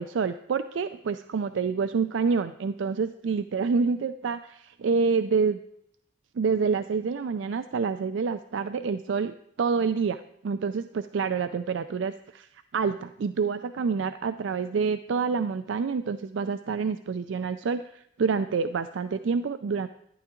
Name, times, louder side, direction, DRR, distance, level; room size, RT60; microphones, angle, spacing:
voice 1, 0.0-5.6 6.4-12.5 12.7-19.9, right 5 dB, 75° right, 11 dB, 0.4 m, -27 dB
12.0 x 10.5 x 3.8 m, 0.73 s
head